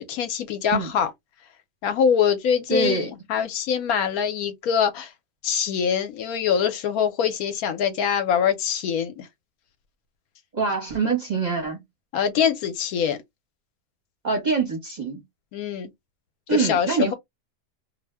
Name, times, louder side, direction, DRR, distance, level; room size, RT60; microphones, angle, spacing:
voice 1, 0.1-1.1 1.8-5.1 5.4-9.3 12.1-13.2 15.5-15.9 16.5-17.1, left 7 dB, 70° left, 1.0 m, -24 dB
voice 2, 2.7-3.1 10.5-11.8 14.2-15.2 16.5-17.1, right 4 dB, 40° right, 0.6 m, -24 dB
2.7 x 2.1 x 3.2 m
omnidirectional pair, 1.8 m